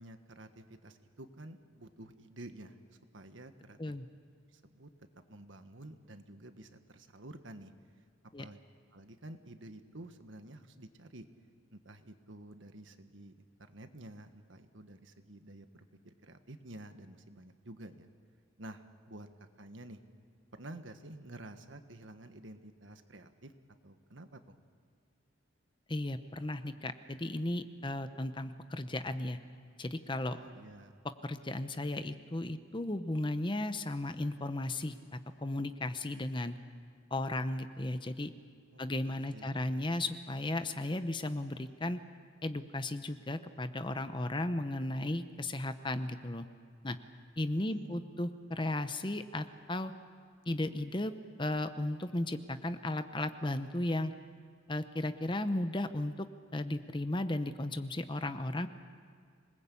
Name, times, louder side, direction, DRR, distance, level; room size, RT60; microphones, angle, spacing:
voice 1, 0.0-3.8 4.5-7.7 8.4-8.6 8.9-11.3 11.7-13.3 13.7-18.1 18.6-20.0 20.5-23.5 23.8-24.6 30.3-31.0 38.7-39.6 47.5-48.1, right 1 dB, 70° right, 8 dB, 1.5 m, -50 dB
voice 2, 25.9-29.4 29.8-30.4 31.2-36.5 37.1-38.3 38.8-42.0 42.4-46.4 46.8-47.0 47.4-49.9 50.5-51.1 51.4-54.1 54.7-56.3 56.5-58.7, left 1 dB, 25° left, 10 dB, 0.8 m, -35 dB
26.5 x 20.0 x 8.5 m, 2.1 s
head